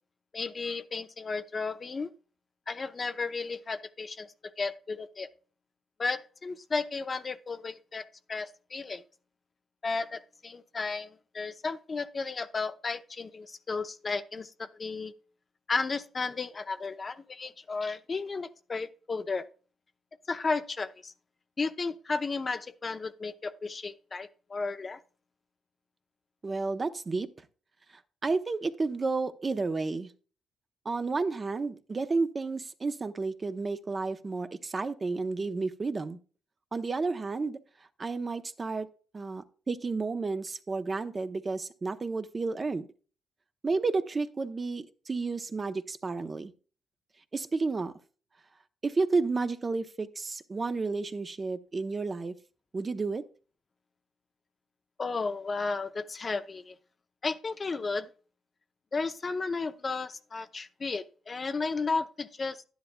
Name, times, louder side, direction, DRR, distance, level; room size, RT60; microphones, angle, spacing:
voice 1, 0.3-2.1 2.7-4.3 4.6-5.3 6.0-9.0 9.8-15.1 15.7-19.5 20.3-21.1 21.6-25.0 55.0-56.8 57.2-58.1 58.9-62.6, left 4 dB, 35° left, 0.6 m, -33 dB
voice 2, 26.4-27.3 28.2-30.1 30.8-36.2 36.7-37.6 38.0-38.9 39.1-42.9 43.6-46.5 47.3-47.9 48.8-52.3 52.7-53.2, right 3 dB, 30° right, 0.8 m, -31 dB
11.5 x 10.5 x 2.2 m
cardioid pair, 90°, 0 cm